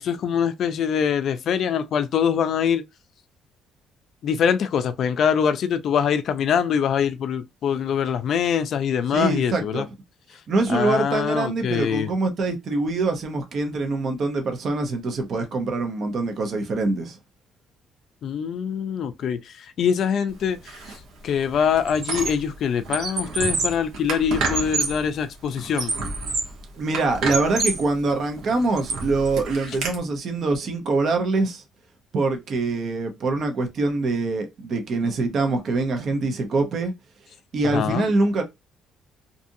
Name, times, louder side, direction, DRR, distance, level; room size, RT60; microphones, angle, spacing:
voice 1, 0.0-2.8 4.2-9.9 10.7-12.1 18.2-25.9 37.6-38.1, left 7 dB, 55° left, 0.3 m, -24 dB
voice 2, 9.1-9.8 10.5-17.2 26.8-31.6 32.1-36.9 37.5-38.4, right 3 dB, 50° right, 0.6 m, -24 dB
Squeak, 20.7-21.0 21.3-22.5 22.8-25.1 25.6-26.6 26.9-27.9 28.4-29.9, right 3 dB, 75° right, 1.0 m, -28 dB
2.6 x 2.5 x 2.6 m
cardioid pair, 135°, 0 cm